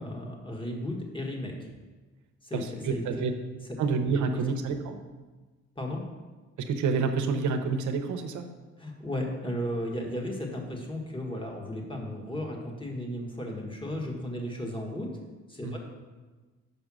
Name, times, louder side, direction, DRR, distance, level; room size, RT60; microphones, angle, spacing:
voice 1, 0.0-1.5 2.4-3.0 5.8-6.0 8.8-15.1 15.5-15.8, left 1 dB, 15° left, 0 dB, 1.5 m, -34 dB
voice 2, 2.5-3.3 3.8-5.0 6.7-8.4 15.6-15.8, right 5 dB, 75° right, 6 dB, 0.8 m, -28 dB
5.6 x 5.1 x 6.1 m, 1.3 s
cardioid pair, 90°, 30 cm